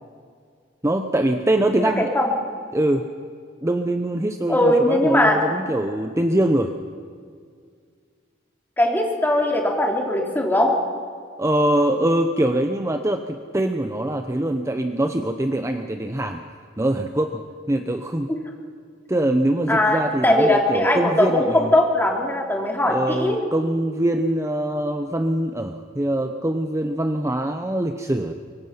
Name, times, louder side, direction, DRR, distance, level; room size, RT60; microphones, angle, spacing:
voice 1, 0.8-2.1 2.7-3.1 3.6-6.7 11.4-16.4 16.8-18.3 19.1-21.7 22.9-28.3, right 1 dB, 15° right, 6 dB, 0.8 m, -23 dB
voice 2, 2.0-2.3 4.5-5.4 8.8-10.7 18.3-18.4 19.7-23.4, left 1 dB, 10° left, 0 dB, 3.0 m, -20 dB
24.0 x 23.5 x 5.8 m, 2.1 s
head